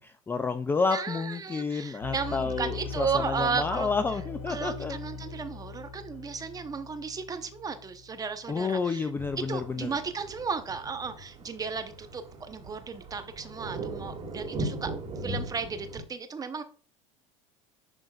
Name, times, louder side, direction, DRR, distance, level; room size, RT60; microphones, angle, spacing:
voice 1, 0.0-5.0 8.5-9.9, left 4 dB, 10° left, 10 dB, 0.3 m, -30 dB
voice 2, 0.9-3.9 4.5-9.1 9.5-14.9 15.2-16.6, right 5 dB, 20° right, 9 dB, 0.9 m, -34 dB
sound 1, 2.0-8.8, left 4 dB, 65° left, 2.7 m, -40 dB
sound 2, 9.2-16.0, right 2 dB, 35° right, 2.3 m, -39 dB
10.5 x 3.8 x 2.4 m, 0.41 s
hypercardioid pair, 100°, 17 cm